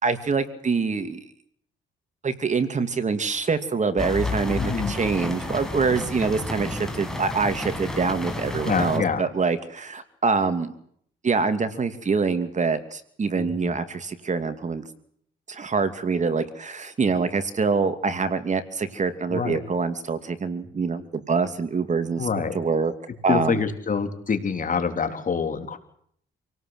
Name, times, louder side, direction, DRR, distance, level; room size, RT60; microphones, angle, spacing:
voice 1, 0.0-1.2 2.2-10.7 11.2-14.8 15.5-22.3 22.5-22.9 23.2-23.6, right 4 dB, 35° right, 10 dB, 2.7 m, -25 dB
sound 1, 4.0-9.0, left 2 dB, ahead, 6.5 m, -31 dB
voice 2, 4.6-5.0 8.7-9.3 13.4-13.8 19.3-19.6 22.2-22.6 23.3-25.8, left 5 dB, 40° left, 8 dB, 3.7 m, -26 dB
28.0 x 18.5 x 7.9 m, 0.66 s
cardioid pair, 90°, 20 cm